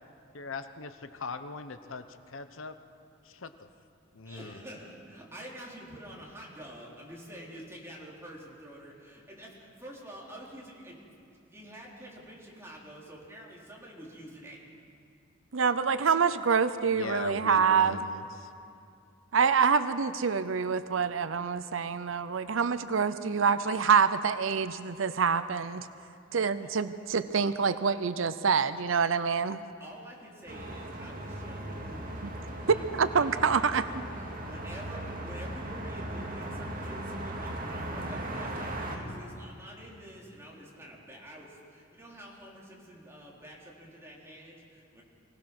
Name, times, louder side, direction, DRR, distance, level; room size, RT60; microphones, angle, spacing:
voice 1, 0.3-2.8 3.2-3.7 4.1-4.6 16.9-18.5, left 4 dB, 85° left, 10 dB, 0.9 m, -40 dB
voice 2, 4.2-11.0 11.5-14.6 29.8-45.0, equal, 15° right, -4 dB, 3.8 m, -48 dB
voice 3, 15.5-18.0 19.3-25.9 26.3-29.6 32.7-33.8, right 6 dB, 80° right, 13 dB, 0.6 m, -26 dB
sound 1, 30.5-39.0, right 1 dB, 45° right, 2.2 m, -38 dB
24.5 x 18.0 x 6.1 m, 2.6 s
head